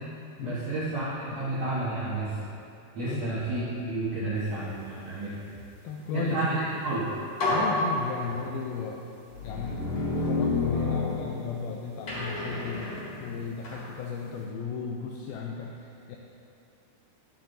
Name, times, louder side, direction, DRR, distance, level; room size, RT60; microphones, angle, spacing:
voice 1, 0.4-2.4 2.9-5.3 6.1-7.0, right 2 dB, 70° right, -10 dB, 1.6 m, -30 dB
voice 2, 5.8-6.6 7.5-9.0 9.4-16.2, left 5 dB, 90° left, 0 dB, 2.1 m, -35 dB
sound 1, 6.8-6.9 7.4-8.7 9.3-11.7 12.1-13.9, left 2 dB, 40° left, 2.7 m, -29 dB
11.5 x 10.0 x 2.7 m, 2.7 s
omnidirectional pair, 4.9 m